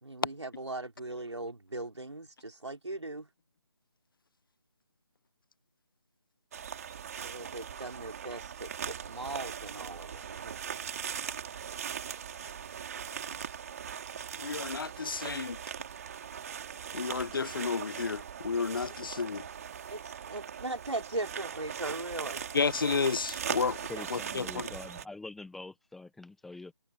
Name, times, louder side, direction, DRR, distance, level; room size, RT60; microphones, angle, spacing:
voice 1, 0.0-3.3 7.2-10.6 13.3-13.5 19.9-22.4 23.9-24.0, right 2 dB, 85° right, 4.1 m, -39 dB
sound 1, 6.5-25.1, right 8 dB, 35° right, 3.2 m, -40 dB
voice 2, 14.4-15.6 16.9-19.5 22.5-24.7, left 5 dB, 50° left, 0.6 m, -32 dB
voice 3, 23.9-26.7, left 3 dB, ahead, 0.6 m, -45 dB
figure-of-eight pair, 155°, 14 cm